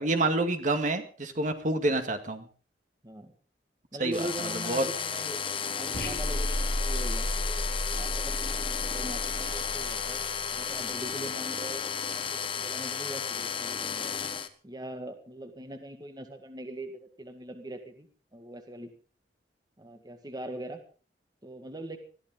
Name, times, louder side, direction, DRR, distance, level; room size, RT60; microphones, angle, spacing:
voice 1, 0.0-2.5 4.0-4.2 4.7-4.9, right 2 dB, 45° right, 6 dB, 2.1 m, -27 dB
voice 2, 3.9-5.4 5.7-10.2 10.5-14.2 14.6-18.9 19.8-20.8 21.4-22.0, right 1 dB, 25° right, 6 dB, 2.0 m, -41 dB
sound 1, 4.1-14.5, left 6 dB, 30° left, 1.4 m, -33 dB
sound 2, 5.9-10.6, equal, 60° left, 2.7 m, -33 dB
21.5 x 14.5 x 3.9 m, 0.39 s
head